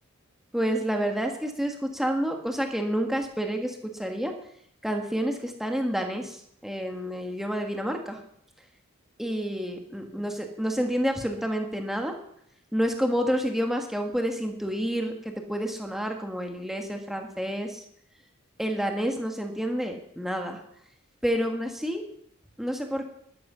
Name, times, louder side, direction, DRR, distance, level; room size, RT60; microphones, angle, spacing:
voice 1, 0.5-4.3 4.8-8.2 9.2-12.1 12.7-17.8 18.6-20.6 21.2-22.0 22.6-23.0, equal, ahead, 3 dB, 1.5 m, -29 dB
12.0 x 11.5 x 5.6 m, 0.70 s
head